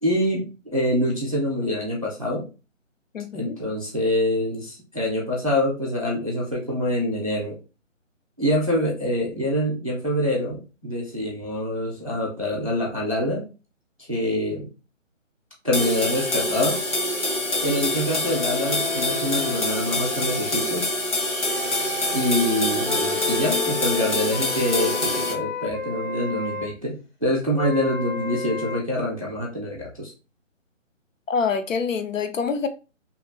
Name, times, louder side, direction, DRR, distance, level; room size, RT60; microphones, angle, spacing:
voice 1, 0.0-2.5 3.3-7.6 8.4-13.5 14.1-14.7 15.6-17.1 17.6-20.9 22.1-30.1, left 1 dB, 30° right, 0.4 m, -25 dB
voice 2, 3.1-3.6 31.3-32.7, left 5 dB, 85° left, 0.6 m, -26 dB
sound 1, 15.7-25.3, left 1 dB, 65° left, 1.2 m, -26 dB
sound 2, 16.1-20.7 21.4-26.7 27.6-28.8, left 5 dB, 40° left, 0.5 m, -33 dB
2.8 x 2.3 x 2.8 m
figure-of-eight pair, 155°, 38 cm